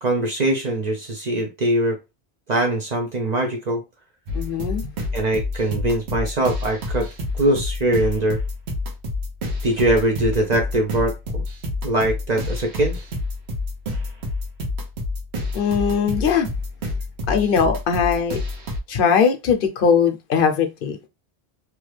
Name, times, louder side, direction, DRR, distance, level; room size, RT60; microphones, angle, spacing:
voice 1, 0.0-2.0 2.5-3.8 5.1-7.1 7.4-8.4 9.6-11.4 11.8-13.0, right 1 dB, 50° right, 0.6 m, -22 dB
voice 2, 4.3-4.9 15.5-16.5 17.3-18.4 18.9-21.0, left 6 dB, 60° left, 0.8 m, -20 dB
sound 1, 4.3-18.8, left 2 dB, 80° right, 1.1 m, -28 dB
2.9 x 2.3 x 3.2 m
omnidirectional pair, 1.1 m